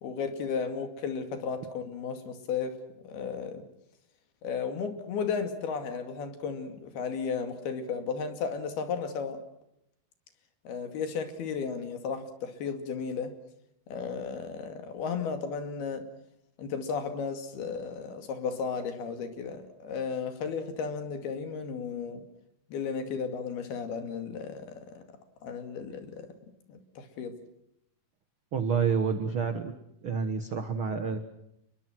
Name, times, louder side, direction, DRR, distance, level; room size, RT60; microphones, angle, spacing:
voice 1, 0.0-2.8 3.0-3.6 4.4-9.4 10.7-13.3 13.9-16.1 16.6-22.2 22.7-25.0 25.4-26.3 26.7-27.3, left 5 dB, 70° left, 7 dB, 4.3 m, -34 dB
voice 2, 28.5-29.7 30.0-31.2, right 6 dB, 85° right, 8 dB, 1.1 m, -28 dB
29.5 x 22.0 x 6.2 m, 0.79 s
omnidirectional pair, 4.7 m